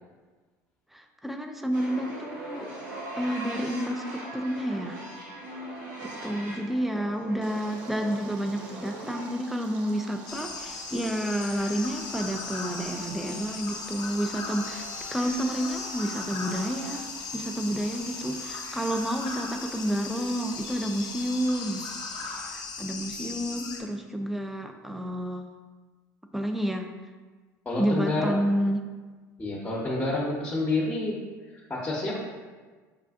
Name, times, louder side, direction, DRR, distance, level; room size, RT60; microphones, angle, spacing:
voice 1, 0.9-2.7 3.2-5.0 6.0-21.9 22.2-25.5 26.3-26.9 27.8-28.8, equal, ahead, 5 dB, 0.4 m, -30 dB
sound 1, 1.7-16.9, right 1 dB, 85° right, 1.0 m, -42 dB
Stream, 7.4-22.4, right 2 dB, 65° right, 0.7 m, -48 dB
sound 2, 10.3-23.8, left 4 dB, 45° left, 0.7 m, -38 dB
voice 2, 27.6-28.3 29.4-31.2 31.7-32.1, left 2 dB, 15° left, -6 dB, 0.9 m, -28 dB
5.7 x 2.4 x 2.4 m, 1.4 s
hypercardioid pair, 75°, 10 cm